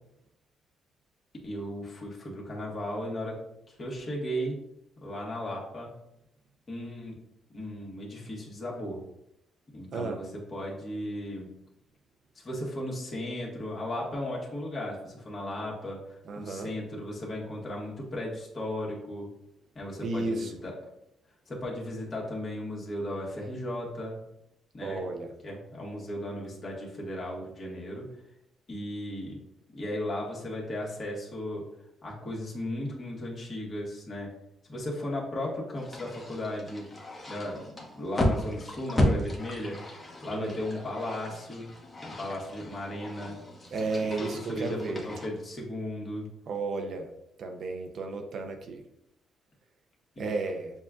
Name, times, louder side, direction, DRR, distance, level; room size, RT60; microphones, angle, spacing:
voice 1, 1.4-4.6 5.0-5.9 6.7-7.2 7.5-9.0 9.7-11.5 12.3-19.3 19.7-20.8 21.5-24.2 24.7-25.1 25.4-28.1 28.7-29.4 29.7-31.7 32.0-34.3 34.7-36.9 37.3-39.8 40.2-41.7 42.0-43.4 44.2-46.3 50.1-50.3, left 1 dB, 40° left, -3 dB, 1.5 m, -36 dB
voice 2, 16.3-16.7 20.0-20.5 24.8-25.3 40.3-40.6 43.7-45.0 46.5-47.1 47.4-48.8 50.2-50.7, right 3 dB, 60° right, 4 dB, 0.6 m, -33 dB
sound 1, 35.8-45.3, left 1 dB, 20° left, 1.0 m, -34 dB
7.0 x 2.4 x 2.4 m, 0.81 s
cardioid pair, 90°, 0 cm